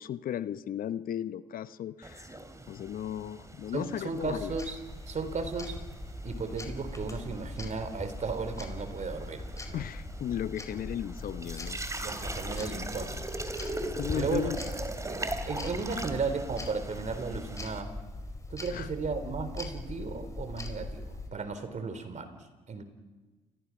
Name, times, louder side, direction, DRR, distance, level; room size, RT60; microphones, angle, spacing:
voice 1, 0.0-2.4 2.7-4.5 9.7-11.8 12.6-12.9 13.7-14.6 18.7-18.9, left 10 dB, 60° left, 14 dB, 0.9 m, -35 dB
sound 1, 2.0-17.8, right 2 dB, 20° right, 3.2 m, -41 dB
voice 2, 3.7-4.8 5.1-5.8 6.2-9.8 12.0-13.5 14.1-14.5 15.0-17.9 18.5-22.3 22.7-22.8, right 4 dB, 45° right, 10 dB, 3.9 m, -35 dB
sound 2, 4.2-21.3, left 2 dB, 20° left, 4.7 m, -40 dB
29.0 x 24.0 x 6.0 m, 1.3 s
hypercardioid pair, 50°, 17 cm